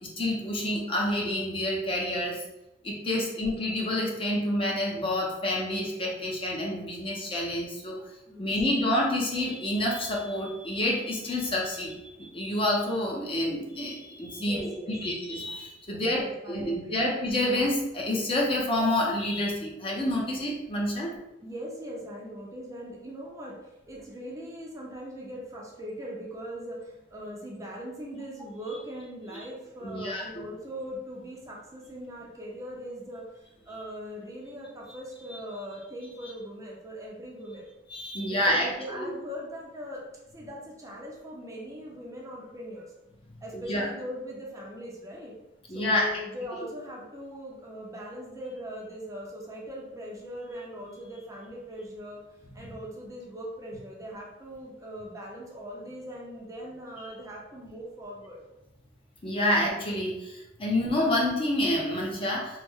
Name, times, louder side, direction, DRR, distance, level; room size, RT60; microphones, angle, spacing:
voice 1, 0.0-2.4 2.8-8.0 8.4-16.2 16.5-21.1 29.8-30.4 37.9-39.2 43.5-43.9 45.7-46.2 52.5-52.7 59.2-62.6, left 1 dB, 30° left, -2 dB, 0.6 m, -28 dB
voice 2, 14.4-15.0 16.0-17.0 21.4-23.6 23.9-33.2 33.7-37.7 38.2-40.1 40.3-42.9 43.4-45.3 45.7-52.2 52.5-58.4, equal, 15° right, -3 dB, 0.5 m, -40 dB
3.1 x 2.1 x 3.5 m, 0.92 s
head